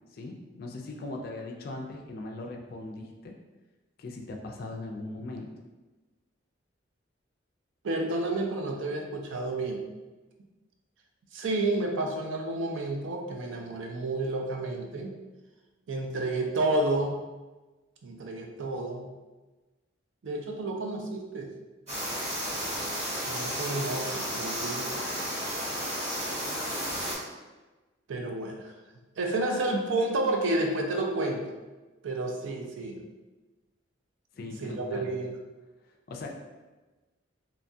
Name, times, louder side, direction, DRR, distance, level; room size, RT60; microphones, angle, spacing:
voice 1, 0.1-3.3 4.0-5.5 34.3-35.1 36.1-36.3, left 2 dB, 50° left, 2 dB, 0.4 m, -39 dB
voice 2, 7.8-9.8 11.3-15.2 15.9-17.2 18.0-19.1 20.2-21.5 23.2-25.1 28.1-28.7 29.2-31.4 32.0-33.0 34.6-35.4, right 2 dB, 75° right, 2 dB, 0.4 m, -30 dB
sound 1, 21.9-27.2, equal, 40° right, 1.4 m, -33 dB
2.8 x 2.2 x 2.6 m, 1.2 s
head